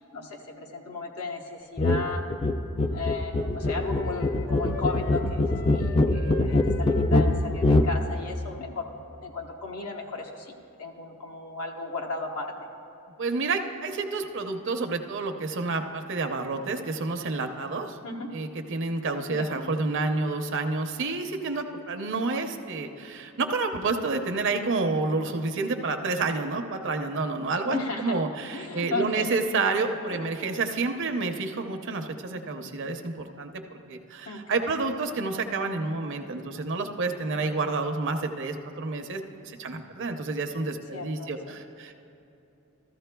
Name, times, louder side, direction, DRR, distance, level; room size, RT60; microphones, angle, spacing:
voice 1, 0.1-2.2 2.8-8.9 9.2-10.5 10.8-12.5 18.0-18.3 19.3-19.6 27.7-28.2 28.5-29.4 30.1-30.2 34.3-34.7 40.9-41.5, left 3 dB, 80° left, 0 dB, 1.1 m, -35 dB
sound 1, 1.8-2.0 2.3-7.9, left 2 dB, 25° left, 0.3 m, -23 dB
sound 2, 2.9-8.1, left 1 dB, 50° left, 0.9 m, -43 dB
voice 2, 13.2-18.0 18.3-42.0, right 3 dB, 55° right, 6 dB, 0.7 m, -29 dB
14.0 x 14.0 x 2.3 m, 2.8 s
head